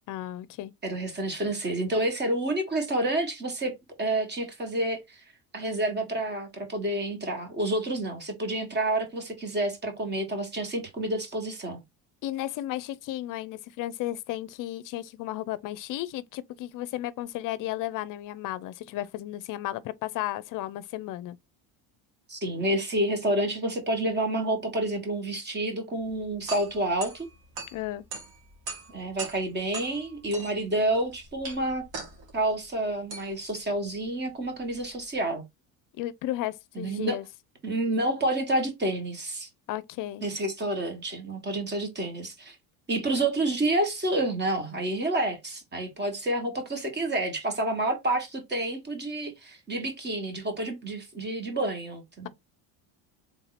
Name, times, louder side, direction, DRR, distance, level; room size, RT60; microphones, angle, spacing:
voice 1, 0.1-0.7 12.2-21.4 27.7-28.0 36.0-37.2 39.7-40.2, left 14 dB, 50° left, 0.5 m, -34 dB
voice 2, 0.8-3.7 4.0-5.2 5.5-11.8 22.3-27.3 28.9-31.8 32.3-35.4 36.7-37.2 37.6-39.5 40.2-42.6 42.9-52.3, right 1 dB, 25° right, 1.5 m, -29 dB
sound 1, 26.0-35.1, right 3 dB, 65° right, 1.9 m, -42 dB
3.6 x 2.8 x 4.1 m
cardioid pair, 115°, 40 cm